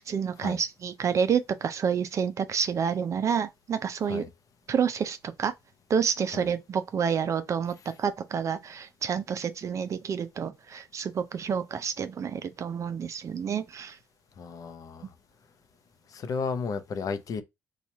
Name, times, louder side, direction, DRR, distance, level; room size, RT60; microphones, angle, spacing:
voice 1, 0.1-4.2 4.7-5.5 5.9-14.0, right 7 dB, 45° right, 0.4 m, -29 dB
voice 2, 14.4-15.1 16.1-17.4, left 5 dB, 55° left, 0.6 m, -33 dB
2.9 x 2.3 x 4.1 m
cardioid pair, 110°, 7 cm